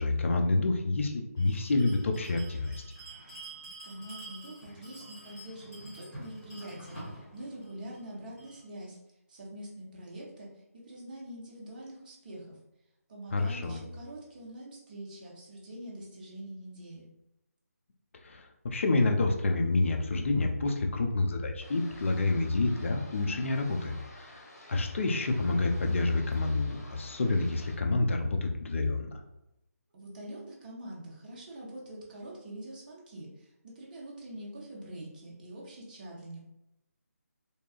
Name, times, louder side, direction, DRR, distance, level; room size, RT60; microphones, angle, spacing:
voice 1, 0.0-2.7 13.3-13.8 18.2-24.4 24.7-29.2, left 2 dB, 50° left, 3 dB, 0.4 m, -28 dB
Bell, 1.4-8.6, right 1 dB, 20° left, 0.9 m, -48 dB
voice 2, 3.8-9.0 9.3-12.6 13.1-17.1 29.9-36.4, right 1 dB, 30° right, -4 dB, 0.7 m, -44 dB
sound 1, 21.6-27.8, left 1 dB, 85° left, 0.8 m, -51 dB
2.7 x 2.3 x 2.3 m, 0.90 s
figure-of-eight pair, 165°, 9 cm